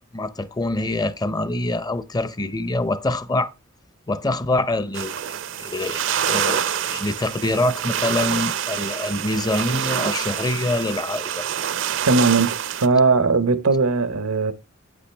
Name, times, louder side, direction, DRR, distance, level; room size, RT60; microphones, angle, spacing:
voice 1, 0.1-3.5 4.1-11.4, left 2 dB, 20° left, 0.5 m, -25 dB
sound 1, 4.9-12.9, right 9 dB, 60° right, 0.6 m, -26 dB
voice 2, 12.0-14.5, right 4 dB, 85° right, 0.9 m, -19 dB
8.6 x 8.4 x 3.3 m
head